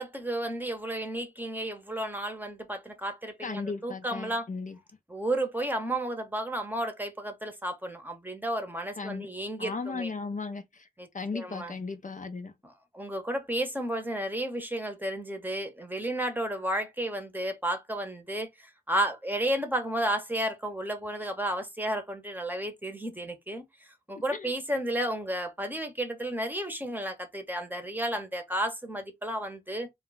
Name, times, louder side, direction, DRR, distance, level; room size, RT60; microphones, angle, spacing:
voice 1, 0.0-4.5 5.1-10.1 11.0-11.1 11.3-11.7 12.6-18.5 18.9-23.6 24.1-29.9, right 1 dB, 10° right, 0.8 m, -32 dB
voice 2, 3.4-4.8 9.0-9.3 9.6-10.9 11.1-12.5 24.1-24.5, left 4 dB, 55° left, 0.5 m, -36 dB
2.3 x 2.1 x 3.8 m
wide cardioid pair, 55°, 16 cm